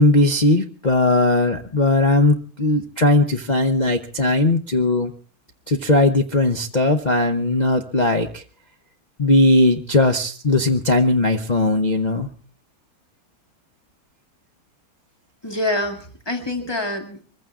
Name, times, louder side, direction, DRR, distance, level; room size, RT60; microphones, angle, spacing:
voice 1, 0.0-5.1 5.7-8.4 9.2-12.3, left 2 dB, 75° left, 3 dB, 0.4 m, -18 dB
voice 2, 15.4-17.2, left 1 dB, 10° left, 3 dB, 2.2 m, -26 dB
23.5 x 15.0 x 3.6 m, 0.40 s
omnidirectional pair, 2.3 m